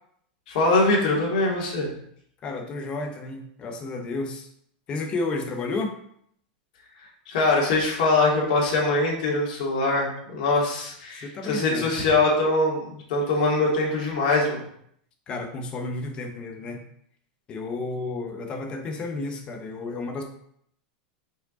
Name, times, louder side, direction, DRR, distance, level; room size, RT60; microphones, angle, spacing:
voice 1, 0.5-1.9 7.3-14.6, left 2 dB, 55° left, -4 dB, 2.4 m, -23 dB
voice 2, 2.4-4.5 4.9-5.9 11.2-11.9 15.3-16.8 17.5-20.2, left 3 dB, 20° left, 4 dB, 0.8 m, -32 dB
5.2 x 4.7 x 3.9 m, 0.68 s
supercardioid pair, 165°, 5 cm